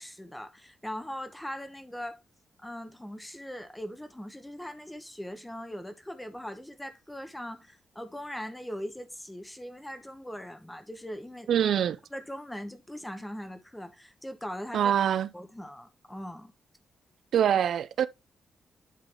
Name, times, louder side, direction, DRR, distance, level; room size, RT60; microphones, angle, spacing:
voice 1, 0.0-2.2 2.6-11.5 12.1-14.9 15.3-16.5, equal, 5° left, 1.1 m, -40 dB
voice 2, 11.5-12.0 14.7-15.3 17.3-18.1, right 9 dB, 75° right, 0.4 m, -24 dB
11.0 x 3.9 x 3.4 m
wide cardioid pair, 145°, 0 cm